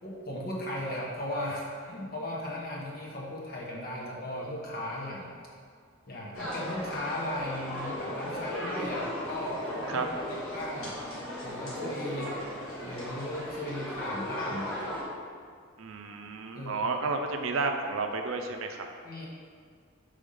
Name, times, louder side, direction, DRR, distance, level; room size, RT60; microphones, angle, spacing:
voice 1, 0.0-5.3 6.1-11.0 11.4-12.4 12.8-14.8 16.5-16.9 19.0-19.3, left 1 dB, 50° left, -4 dB, 1.1 m, -36 dB
sound 1, 6.3-15.0, equal, 85° left, 1.5 m, -36 dB
voice 2, 15.8-18.9, right 3 dB, 75° right, 5 dB, 0.5 m, -31 dB
5.0 x 3.5 x 5.4 m, 2.1 s
head